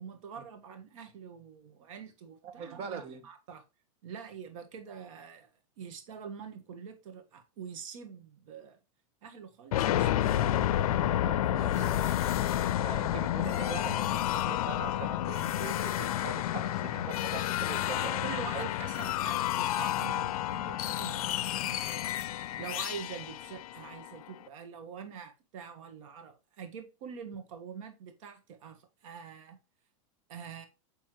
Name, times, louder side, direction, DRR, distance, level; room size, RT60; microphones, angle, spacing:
voice 1, 0.0-3.6 4.0-5.5 5.8-8.8 9.2-10.9 11.3-12.2 17.9-22.1 22.6-29.6 30.3-30.7, right 7 dB, 65° right, 1.5 m, -45 dB
voice 2, 2.4-3.2 11.1-11.9 12.8-18.2 18.5-18.7 21.7-21.8, right 6 dB, 35° right, 1.1 m, -42 dB
sound 1, 9.7-24.4, left 12 dB, 90° left, 0.5 m, -30 dB
9.1 x 3.4 x 3.1 m
supercardioid pair, 150°, 18 cm